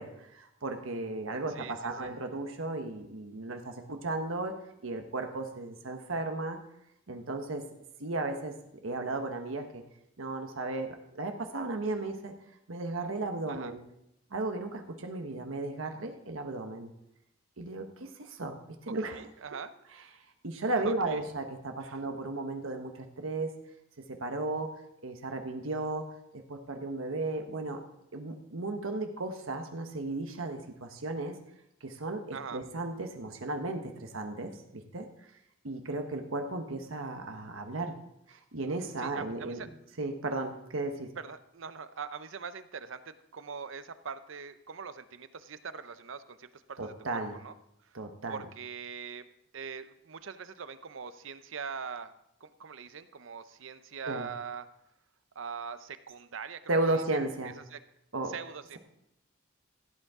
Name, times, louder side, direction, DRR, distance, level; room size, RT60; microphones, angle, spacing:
voice 1, 0.0-4.5 4.8-6.6 7.1-7.6 8.0-8.5 8.8-9.8 10.2-12.3 12.7-13.8 14.3-16.9 17.6-19.2 20.4-23.5 24.1-24.7 25.0-26.1 26.3-27.8 28.1-31.4 31.8-35.1 35.6-37.9 38.3-39.7 40.0-41.1 46.8-47.3 47.9-48.4 54.1-54.3 56.7-57.5 58.1-58.3, right 2 dB, 85° right, 5 dB, 1.2 m, -35 dB
voice 2, 1.5-2.1 13.5-13.7 18.9-19.7 20.7-21.2 21.8-22.0 32.3-32.6 39.0-39.7 41.2-43.0 43.3-47.5 47.8-48.0 48.3-49.3 49.5-52.1 52.4-54.7 55.3-57.0 57.4-57.8 58.2-58.8, right 6 dB, 70° right, 12 dB, 0.7 m, -42 dB
16.0 x 8.1 x 3.7 m, 0.80 s
head